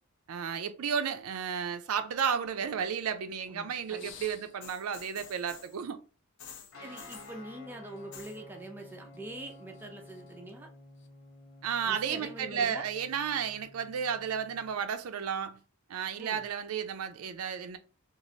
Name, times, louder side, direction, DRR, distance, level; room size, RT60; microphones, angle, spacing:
voice 1, 0.3-6.0 11.6-15.6 15.9-17.8, right 7 dB, 90° right, 0.4 m, -33 dB
voice 2, 3.5-4.1 6.8-10.7 11.8-12.8 16.2-16.4, right 1 dB, 10° right, 0.3 m, -44 dB
sound 1, 3.8-5.8 6.4-7.4 8.0-8.4 8.7-9.2 9.5-10.3 11.0-11.1, left 7 dB, 55° left, 0.4 m, -49 dB
Guitar, 6.7-14.8, left 1 dB, 80° left, 1.1 m, -52 dB
3.0 x 2.4 x 2.7 m
head